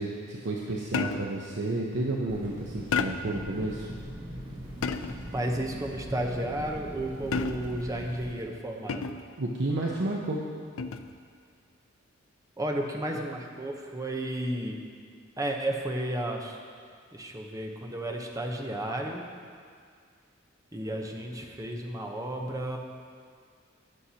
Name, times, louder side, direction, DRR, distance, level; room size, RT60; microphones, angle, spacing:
voice 1, 0.0-3.9 9.4-10.4, right 2 dB, 60° right, -2 dB, 0.8 m, -31 dB
sound 1, 0.9-1.5 2.9-3.4 4.8-5.3 7.3-7.9 8.9-9.4 10.8-11.2, left 5 dB, 90° left, 0.4 m, -31 dB
sound 2, 2.3-8.3, equal, 80° right, 2.7 m, -41 dB
voice 2, 5.3-9.1 12.6-14.8 15.4-16.6 17.1-19.3 20.7-22.8, right 1 dB, 15° right, 1 dB, 0.8 m, -33 dB
17.0 x 6.5 x 2.9 m, 2.1 s
head